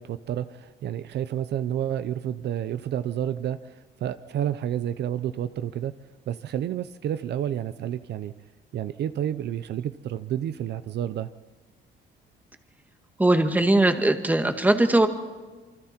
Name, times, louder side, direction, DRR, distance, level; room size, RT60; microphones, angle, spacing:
voice 1, 0.0-5.9 6.3-8.3 8.7-11.3, right 10 dB, 60° right, 13 dB, 0.8 m, -30 dB
voice 2, 13.2-15.1, right 2 dB, 10° right, 7 dB, 1.8 m, -20 dB
27.5 x 24.5 x 4.5 m, 1.4 s
cardioid pair, 130°, 19 cm